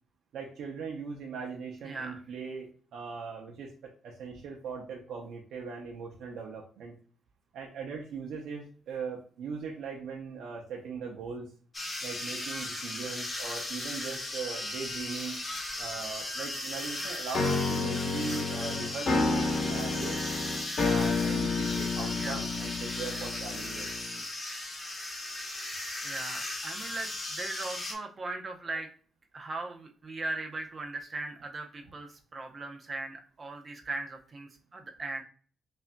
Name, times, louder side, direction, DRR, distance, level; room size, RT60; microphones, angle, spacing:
voice 1, 0.3-6.9 7.5-11.5 12.0-15.4 15.8-20.2 20.8-23.9, right 5 dB, 85° right, -1 dB, 0.7 m, -40 dB
voice 2, 1.9-2.2 22.2-22.4 26.0-28.9 29.3-35.2, right 2 dB, 30° right, 3 dB, 0.7 m, -38 dB
sound 1, 11.7-27.9, left 1 dB, 20° left, 1.0 m, -37 dB
sound 2, 17.3-24.2, left 4 dB, 50° left, 0.9 m, -30 dB
5.4 x 2.6 x 2.2 m, 0.43 s
cardioid pair, 140°, 0 cm